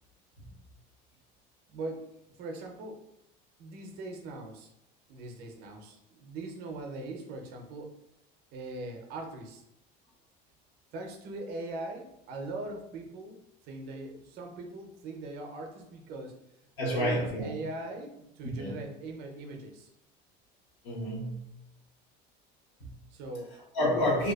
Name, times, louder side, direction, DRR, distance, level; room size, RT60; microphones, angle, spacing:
voice 1, 1.7-2.1 2.4-3.0 3.6-4.7 5.1-7.9 8.5-9.6 10.9-16.4 16.8-19.9 23.1-23.5, right 2 dB, 55° right, 3 dB, 0.5 m, -40 dB
voice 2, 16.8-17.5 18.6-18.8 20.8-21.5 22.8-22.9 23.5-24.3, left 1 dB, 60° left, -3 dB, 1.0 m, -29 dB
2.6 x 2.2 x 2.2 m, 0.83 s
cardioid pair, 135°, 20 cm